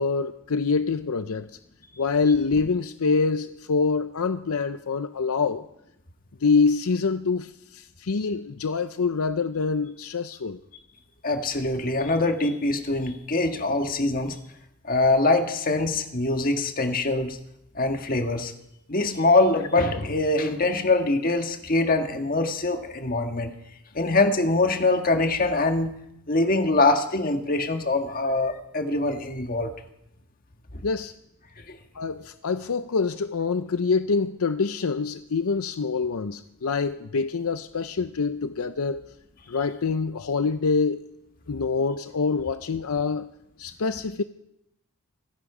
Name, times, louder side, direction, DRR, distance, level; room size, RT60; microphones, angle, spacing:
voice 1, 0.0-1.5 2.0-5.7 6.4-10.6 30.8-31.1 31.9-39.1 39.5-41.0 41.5-43.3 43.6-44.2, left 4 dB, 80° left, 0.6 m, -25 dB
voice 2, 11.2-14.4 14.8-17.4 17.7-18.5 18.9-23.5 23.9-25.9 26.3-29.7 30.7-30.8 31.7-31.8, left 2 dB, 40° left, 1.5 m, -23 dB
26.5 x 10.5 x 4.9 m
head